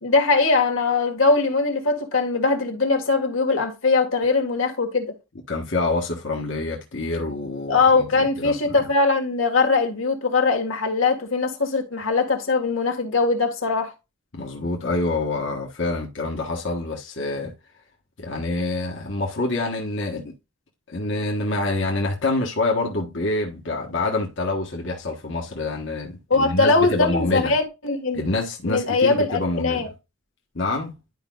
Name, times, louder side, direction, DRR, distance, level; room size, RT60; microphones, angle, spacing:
voice 1, 0.0-5.1 7.7-13.9 26.3-28.2 28.7-29.9, left 3 dB, 85° left, 1.8 m, -21 dB
voice 2, 5.5-8.9 14.3-17.5 18.2-20.3 20.9-27.6 28.1-29.9 30.5-30.9, left 2 dB, 65° left, 1.3 m, -26 dB
11.0 x 5.1 x 2.4 m
head